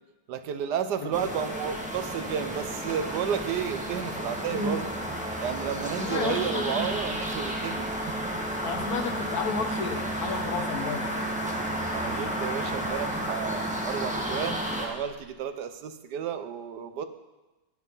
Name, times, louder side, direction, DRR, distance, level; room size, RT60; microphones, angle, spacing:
voice 1, 0.3-4.8 5.4-8.4 11.9-17.0, right 8 dB, 75° right, 10 dB, 1.4 m, -32 dB
sound 1, 1.1-14.9, right 1 dB, 5° right, 1.4 m, -32 dB
voice 2, 4.5-5.0 5.9-6.9 8.6-11.4, left 4 dB, 65° left, 6 dB, 1.5 m, -32 dB
17.5 x 7.6 x 5.5 m, 1.1 s
omnidirectional pair, 1.8 m